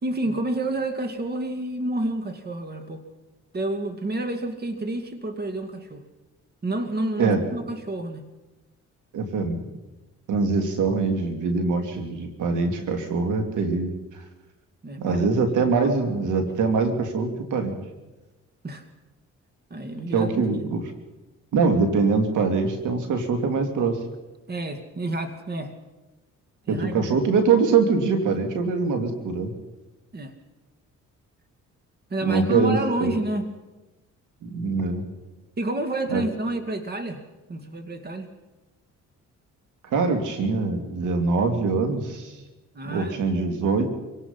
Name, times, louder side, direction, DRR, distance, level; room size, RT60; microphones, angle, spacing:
voice 1, 0.0-3.0 3.5-6.0 6.6-8.3 14.8-15.3 15.8-15.9 18.6-18.8 19.7-20.7 24.5-25.7 26.7-27.1 30.1-30.3 32.1-33.5 35.6-37.2 37.5-38.3 42.7-43.2, right 1 dB, 35° right, 7 dB, 2.4 m, -29 dB
voice 2, 9.1-9.6 10.3-14.2 15.0-17.8 20.1-20.8 21.5-24.0 26.7-29.5 32.2-33.1 34.4-35.0 36.1-36.2 39.9-42.3 42.8-43.9, right 4 dB, 80° right, 5 dB, 2.8 m, -23 dB
25.5 x 18.0 x 5.6 m, 1.1 s
cardioid pair, 90°, 30 cm